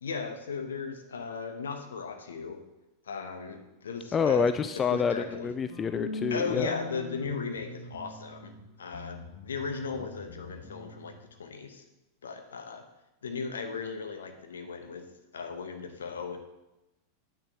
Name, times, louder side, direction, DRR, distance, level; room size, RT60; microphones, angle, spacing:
voice 1, 0.0-2.6 3.0-4.5 4.9-5.5 6.3-11.8 12.2-12.8 13.2-15.0 15.3-16.4, left 5 dB, 70° left, 6 dB, 1.0 m, -37 dB
voice 2, 4.1-6.7, left 6 dB, 25° left, 11 dB, 0.3 m, -27 dB
sound 1, 5.7-8.6 8.9-11.1, left 1 dB, 55° left, 1.8 m, -42 dB
9.5 x 9.1 x 2.9 m, 0.98 s
figure-of-eight pair, 85°, 0 cm